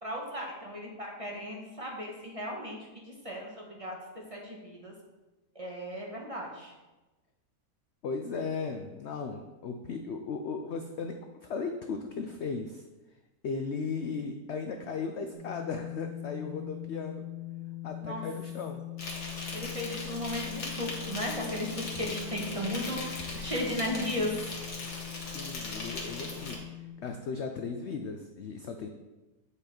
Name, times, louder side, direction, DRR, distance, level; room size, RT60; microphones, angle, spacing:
voice 1, 0.0-2.8 3.2-3.5 3.8-4.0 4.3-4.9 5.5-6.7 18.0-18.2 19.5-24.3, left 1 dB, 25° right, -2 dB, 1.1 m, -35 dB
voice 2, 8.0-11.2 11.4-12.8 13.4-17.2 17.8-18.8 25.2-28.9, left 4 dB, 75° left, 5 dB, 0.6 m, -36 dB
sound 1, 15.3-26.9, left 15 dB, 40° right, 2.2 m, -42 dB
Insect, 19.0-26.6, left 2 dB, 60° left, 1.8 m, -39 dB
8.2 x 5.2 x 4.3 m, 1.1 s
omnidirectional pair, 1.8 m